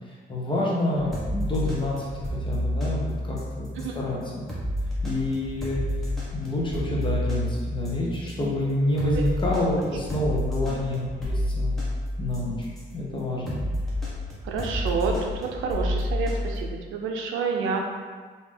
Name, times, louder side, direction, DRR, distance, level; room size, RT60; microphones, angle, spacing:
voice 1, 0.3-3.7 3.9-4.5 5.0-5.8 6.3-11.7 12.2-12.7 12.9-13.6, left 1 dB, 25° left, -4 dB, 1.0 m, -28 dB
sound 1, 1.1-12.9 13.5-16.6, left 1 dB, ahead, 1.2 m, -30 dB
voice 2, 14.4-17.8, right 5 dB, 90° right, 2 dB, 0.5 m, -28 dB
3.3 x 2.8 x 3.3 m, 1.5 s
cardioid pair, 90°, 20 cm